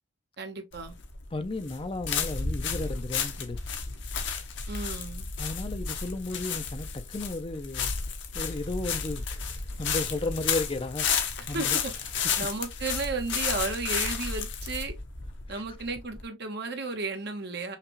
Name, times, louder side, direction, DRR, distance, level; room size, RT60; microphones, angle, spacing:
voice 1, 0.4-0.9 4.7-5.3 11.5-11.9 12.4-14.9 15.5-17.8, right 3 dB, 55° right, 1.0 m, -33 dB
sound 1, 0.7-16.2, left 6 dB, 65° left, 0.9 m, -32 dB
voice 2, 1.3-3.6 5.4-7.9 8.3-11.8 12.1-12.2 15.5-15.6, left 2 dB, 25° left, 0.6 m, -34 dB
5.7 x 2.4 x 3.0 m
head